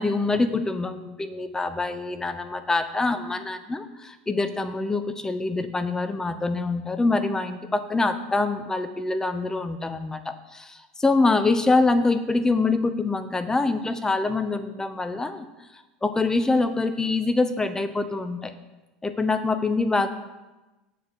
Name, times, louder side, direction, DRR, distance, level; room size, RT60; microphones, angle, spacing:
voice 1, 0.0-15.4 16.0-18.6 19.0-20.1, left 3 dB, 10° left, 10 dB, 0.7 m, -25 dB
7.3 x 4.5 x 6.9 m, 1.1 s
hypercardioid pair, 90°, 5 cm